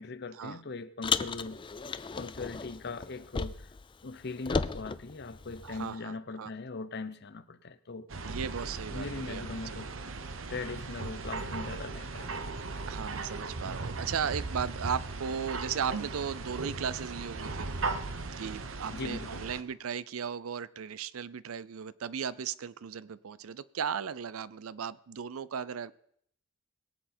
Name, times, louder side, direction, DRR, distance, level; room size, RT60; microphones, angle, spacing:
voice 1, 0.0-1.6 2.2-3.6 4.0-8.1 8.9-9.9 10.5-12.3 18.9-19.4, left 3 dB, 55° left, 0.8 m, -40 dB
Car, 1.0-3.8 4.1-5.9, left 5 dB, 25° left, 0.4 m, -35 dB
voice 2, 5.6-6.5 8.2-9.8 12.9-17.7 18.4-26.0, right 7 dB, 90° right, 0.5 m, -36 dB
sound 1, 8.1-19.6, right 3 dB, 70° right, 0.9 m, -37 dB
21.5 x 7.8 x 4.4 m
head